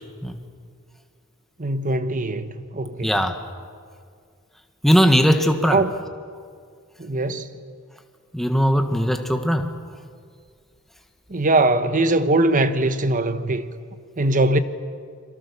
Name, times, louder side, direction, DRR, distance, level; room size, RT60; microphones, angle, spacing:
voice 1, 1.6-3.2 5.7-5.9 7.0-7.5 11.3-13.6 14.2-14.6, right 2 dB, 35° right, 11 dB, 1.0 m, -21 dB
voice 2, 3.0-3.4 4.8-5.8 8.3-9.7, equal, ahead, 5 dB, 1.5 m, -19 dB
29.5 x 23.0 x 7.0 m, 2.1 s
head